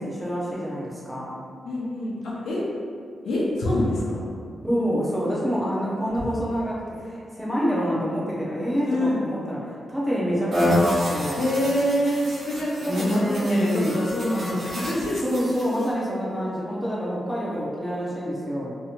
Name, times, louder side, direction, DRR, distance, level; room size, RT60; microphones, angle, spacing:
voice 1, 0.0-1.4 4.6-11.5 12.9-14.0 15.2-18.8, equal, ahead, -7 dB, 0.6 m, -27 dB
voice 2, 1.6-2.6 3.2-4.2 6.2-6.3 8.8-9.2 11.3-15.2, left 1 dB, 90° left, -5 dB, 0.6 m, -26 dB
sound 1, 10.5-15.9, left 1 dB, 45° right, 0.5 m, -28 dB
2.9 x 2.9 x 2.4 m, 2.2 s
wide cardioid pair, 145°, 0 cm